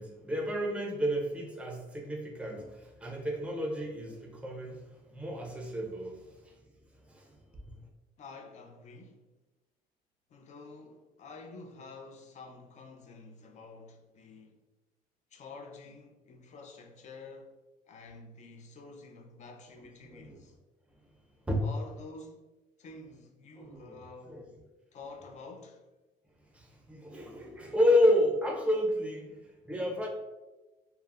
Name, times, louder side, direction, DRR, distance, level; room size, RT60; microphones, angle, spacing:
voice 1, 0.0-6.5 7.1-7.8 20.0-20.4 21.4-21.6 23.6-24.0 24.3-24.4 26.5-30.1, left 1 dB, 5° right, 0.5 m, -31 dB
voice 2, 8.2-9.3 10.3-14.6 15.3-17.5 17.9-20.5 21.6-22.5 22.8-24.5 24.9-25.9, left 3 dB, 45° left, 0.5 m, -49 dB
2.3 x 2.1 x 3.4 m
cardioid pair, 110°, 17 cm